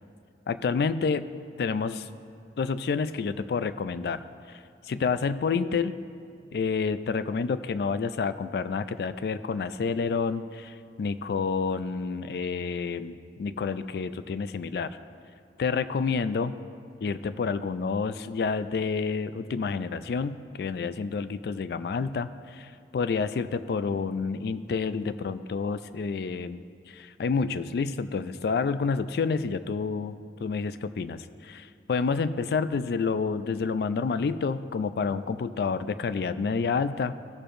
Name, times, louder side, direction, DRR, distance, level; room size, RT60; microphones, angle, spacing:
voice 1, 0.5-1.3 1.6-2.1 2.6-4.2 4.5-6.0 6.5-15.0 15.6-16.6 17.0-31.6 31.9-37.1, left 5 dB, 65° left, 13 dB, 0.3 m, -29 dB
15.5 x 6.7 x 2.6 m, 2.3 s
head